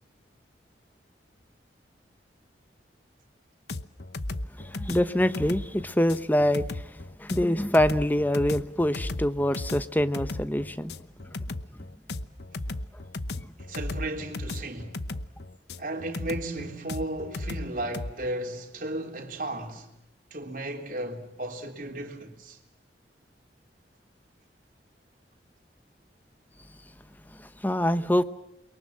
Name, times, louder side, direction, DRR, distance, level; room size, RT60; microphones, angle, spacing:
sound 1, 3.7-18.1, left 2 dB, 65° left, 1.0 m, -35 dB
voice 1, 4.6-10.9 13.3-13.5 27.4-28.2, left 1 dB, 10° left, 0.9 m, -25 dB
voice 2, 13.6-15.0 15.8-19.9 20.3-22.6, right 1 dB, 50° right, 3.6 m, -35 dB
29.0 x 23.0 x 7.5 m
head